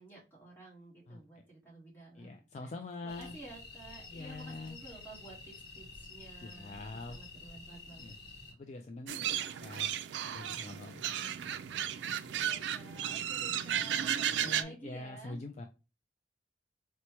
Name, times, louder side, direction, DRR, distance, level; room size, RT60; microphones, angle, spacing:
voice 1, 0.0-2.7 3.0-8.1 9.4-9.5 12.2-15.4, right 2 dB, 10° left, -3 dB, 1.3 m, -52 dB
voice 2, 2.1-3.3 4.1-4.8 6.4-7.2 8.0-8.2 8.5-9.3 9.6-9.9 10.2-11.0 14.4-15.7, left 2 dB, 40° left, 4 dB, 0.3 m, -44 dB
sound 1, 3.1-8.5, left 3 dB, 60° left, 0.9 m, -50 dB
sound 2, 9.1-14.6, right 10 dB, 85° right, 0.3 m, -34 dB
4.3 x 2.1 x 2.9 m, 0.30 s
head